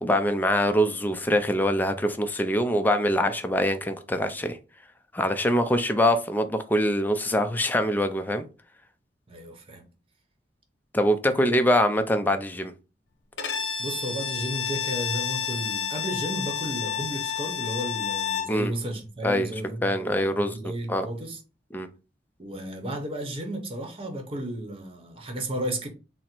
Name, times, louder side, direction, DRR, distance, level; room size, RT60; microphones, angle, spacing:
voice 1, 0.0-4.6 5.1-8.4 10.9-12.7 18.5-18.7 19.2-19.5 19.8-20.5 20.9-21.1 21.7-21.9, equal, 10° left, 0.4 m, -24 dB
voice 2, 9.3-9.9 13.8-21.4 22.4-25.9, right 1 dB, 30° right, 0.8 m, -33 dB
Bowed string instrument, 13.4-18.6, left 8 dB, 75° left, 0.8 m, -30 dB
4.0 x 2.0 x 4.4 m
head